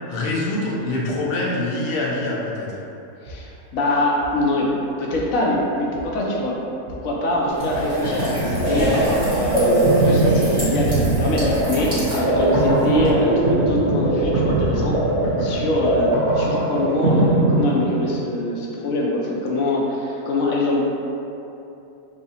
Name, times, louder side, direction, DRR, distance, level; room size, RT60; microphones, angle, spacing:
voice 1, 0.1-2.7, left 2 dB, 50° left, -4 dB, 0.8 m, -24 dB
voice 2, 3.2-4.7 5.0-6.6 7.0-8.9 9.3-15.0 15.4-16.1 16.3-20.8, left 1 dB, 75° left, -3 dB, 1.1 m, -23 dB
sound 1, 3.3-3.4 4.2-4.3 5.1-5.2 5.9-6.0 6.9-7.0 7.7-7.8 8.6-8.7 9.4-9.5 10.2-10.3 10.6-10.9 11.2-11.5 11.8-12.1 12.3-13.2 13.5-14.9, right 1 dB, 85° right, 1.2 m, -36 dB
sound 2, 7.4-18.3, right 2 dB, 55° right, 1.4 m, -21 dB
sound 3, 7.5-13.1, equal, 25° right, 1.5 m, -28 dB
5.7 x 2.7 x 2.8 m, 2.8 s
omnidirectional pair, 1.5 m